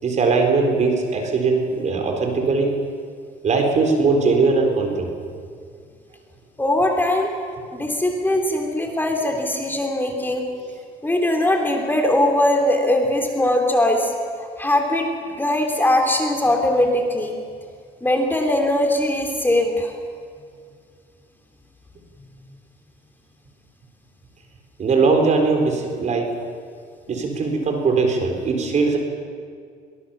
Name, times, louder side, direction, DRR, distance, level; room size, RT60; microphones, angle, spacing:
voice 1, 0.0-2.8 3.4-5.2 24.8-26.3 27.1-29.0, right 4 dB, 45° right, 3 dB, 4.3 m, -20 dB
voice 2, 6.6-7.3 7.7-10.4 11.0-14.1 14.4-17.3 18.0-19.9, left 1 dB, 10° left, 2 dB, 2.9 m, -20 dB
23.0 x 19.0 x 7.3 m, 2.1 s
cardioid pair, 110°, 17 cm